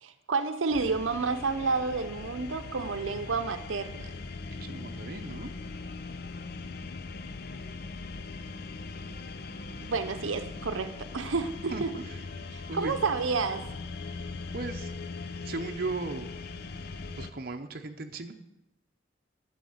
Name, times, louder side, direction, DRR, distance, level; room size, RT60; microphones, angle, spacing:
voice 1, 0.0-4.1 9.8-11.9 12.5-13.7, right 4 dB, 85° right, 9 dB, 0.7 m, -30 dB
sound 1, 0.7-17.3, left 3 dB, 50° left, 0.6 m, -40 dB
voice 2, 4.5-5.5 11.7-12.2 12.7-13.0 14.5-14.9 15.4-16.3 17.2-18.3, right 3 dB, 50° right, 5 dB, 0.7 m, -37 dB
9.0 x 7.0 x 7.8 m, 0.92 s
head